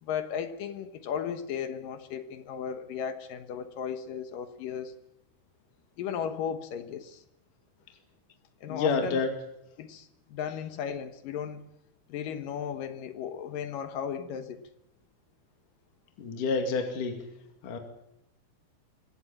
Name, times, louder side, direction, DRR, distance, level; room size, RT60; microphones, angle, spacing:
voice 1, 0.0-4.9 6.0-7.2 8.6-9.2 9.8-11.6 12.1-14.6, left 8 dB, 65° left, 8 dB, 2.2 m, -35 dB
voice 2, 8.7-9.3 16.2-17.3 17.6-17.8, left 4 dB, 50° left, 4 dB, 3.4 m, -28 dB
24.5 x 17.5 x 8.6 m, 0.83 s
omnidirectional pair, 5.6 m